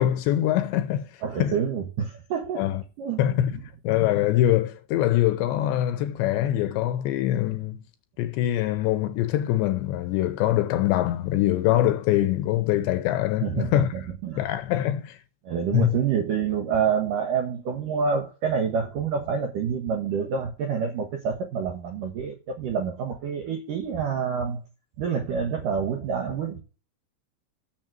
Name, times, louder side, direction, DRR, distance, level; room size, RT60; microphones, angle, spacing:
voice 1, 0.0-1.1 1.4-1.6 2.6-2.8 3.2-3.6 3.8-7.8 8.2-13.9 14.4-15.2 15.7-16.0, left 13 dB, 75° left, 2.8 m, -23 dB
voice 2, 1.2-2.7 3.0-3.6 13.4-14.5 15.5-24.6 25.0-26.6, right 6 dB, 75° right, 1.9 m, -27 dB
7.3 x 7.2 x 7.5 m
omnidirectional pair, 5.7 m